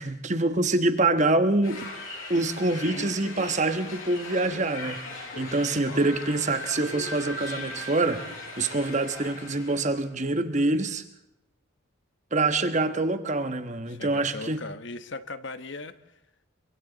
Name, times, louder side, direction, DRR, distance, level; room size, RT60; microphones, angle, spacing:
voice 1, 0.0-1.8 2.3-11.0 12.3-14.6, right 2 dB, 35° right, 1.2 m, -25 dB
sound 1, 1.6-10.0, left 2 dB, 85° left, 7.3 m, -39 dB
voice 2, 13.9-15.9, left 3 dB, 60° left, 1.2 m, -38 dB
30.0 x 24.0 x 4.0 m
head